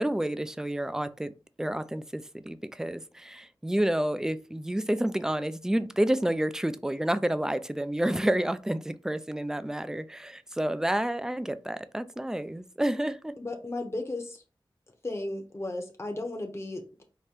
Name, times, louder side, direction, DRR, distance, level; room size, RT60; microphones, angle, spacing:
voice 1, 0.0-1.3 1.6-13.3, right 1 dB, 5° right, 0.3 m, -29 dB
voice 2, 13.4-14.4 15.0-17.0, left 2 dB, 30° left, 0.8 m, -35 dB
5.0 x 2.1 x 4.3 m
wide cardioid pair, 85°, 9 cm